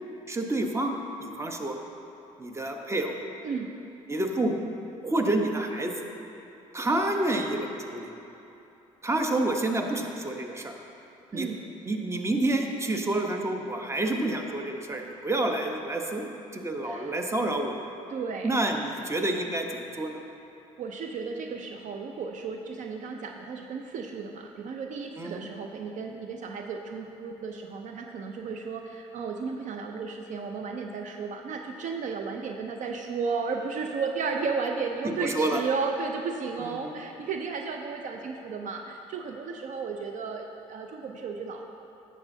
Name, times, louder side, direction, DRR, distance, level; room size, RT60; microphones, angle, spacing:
voice 1, 0.3-0.9 1.2-1.8 2.4-3.1 4.1-4.7 5.0-5.9 6.7-8.1 9.0-10.7 11.3-11.5 11.8-17.8 18.4-20.2 25.2-25.4 35.2-35.6 36.6-36.9, right 2 dB, 20° right, 3 dB, 0.9 m, -28 dB
voice 2, 16.8-17.1 18.1-18.6 20.8-41.6, right 5 dB, 55° right, 3 dB, 0.6 m, -34 dB
10.5 x 7.3 x 2.7 m, 3.0 s
supercardioid pair, 65°, 15 cm